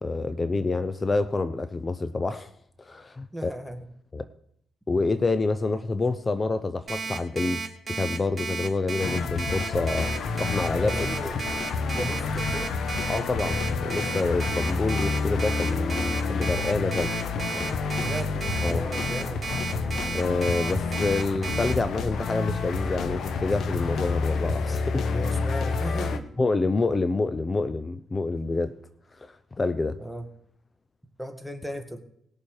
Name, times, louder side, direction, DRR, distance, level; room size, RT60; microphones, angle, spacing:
voice 1, 0.0-2.5 2.8-3.5 4.1-4.3 4.9-7.6 8.0-10.1 10.4-10.9 13.1-17.1 17.5-17.7 18.6-18.8 20.1-25.1 26.4-28.8 29.2-30.0, left 3 dB, 25° left, 12 dB, 0.7 m, -27 dB
voice 2, 3.3-3.9 10.7-11.6 11.9-12.7 17.9-19.4 25.1-26.3 30.0-30.3 31.2-32.0, equal, ahead, 7 dB, 1.7 m, -36 dB
Alarm, 6.9-21.7, right 5 dB, 30° right, 2.5 m, -33 dB
sound 1, 9.0-26.2, left 4 dB, 65° left, 1.2 m, -29 dB
19.5 x 7.0 x 4.8 m, 0.70 s
cardioid pair, 90°, 0 cm